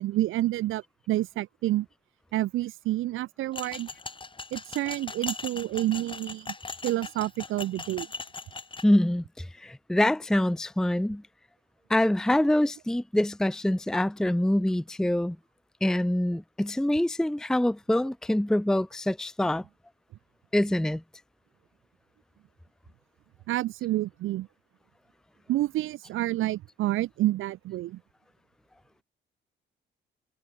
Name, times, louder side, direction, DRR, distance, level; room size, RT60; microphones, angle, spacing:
voice 1, 0.0-1.9 2.3-3.9 4.5-6.5 6.8-8.1 23.5-24.5 25.5-28.0, right 15 dB, 90° right, 3.2 m, -29 dB
sound 1, 3.5-8.8, left 3 dB, 25° left, 3.8 m, -39 dB
voice 2, 8.8-11.2 11.9-15.4 15.8-19.6 20.5-21.0, left 1 dB, 5° left, 0.6 m, -25 dB
cardioid pair, 90°, 20 cm